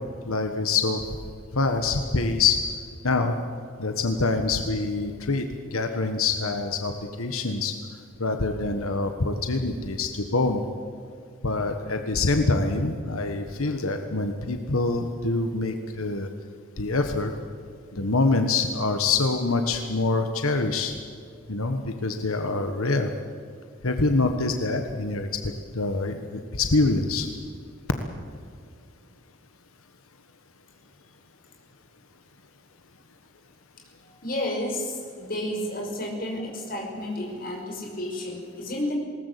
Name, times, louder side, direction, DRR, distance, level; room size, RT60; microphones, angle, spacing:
voice 1, 0.2-1.0 1.5-2.7 3.0-3.3 3.8-6.9 7.2-7.7 8.2-10.6 11.4-16.3 16.8-17.3 17.9-20.9 21.5-23.1 23.8-25.3 25.7-27.3, left 3 dB, 90° left, 6 dB, 1.5 m, -25 dB
voice 2, 34.2-38.9, left 1 dB, 45° left, 1 dB, 5.6 m, -31 dB
20.5 x 19.0 x 8.4 m, 2.3 s
head